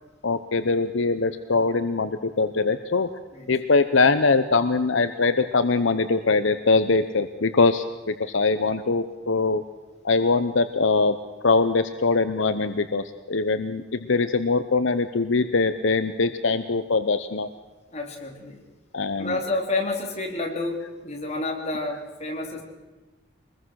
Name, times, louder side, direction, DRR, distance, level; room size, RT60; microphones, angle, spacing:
voice 1, 0.2-3.1 3.5-9.6 10.0-11.2 11.4-17.5 18.9-19.4, left 3 dB, 70° left, 10 dB, 0.8 m, -22 dB
voice 2, 17.9-18.6 19.2-22.6, left 2 dB, 30° left, 1 dB, 3.3 m, -29 dB
23.5 x 20.5 x 6.4 m, 1.2 s
head